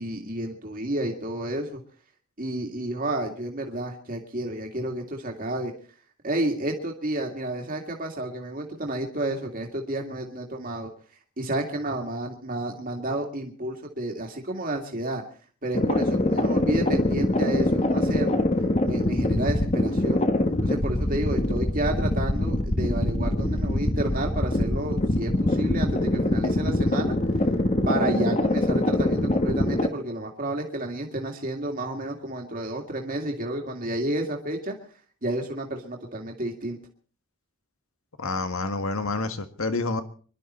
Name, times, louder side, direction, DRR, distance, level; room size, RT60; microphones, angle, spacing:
voice 1, 0.0-1.8 2.4-5.7 6.2-10.9 11.4-15.2 15.6-18.5 18.8-20.2 20.6-27.2 27.9-34.8 35.2-36.8, right 1 dB, 40° right, 2 dB, 2.1 m, -31 dB
sound 1, 15.7-29.9, left 1 dB, 30° left, 1.2 m, -24 dB
voice 2, 38.2-40.0, left 3 dB, 75° left, 9 dB, 1.6 m, -28 dB
25.5 x 11.5 x 4.3 m, 0.42 s
head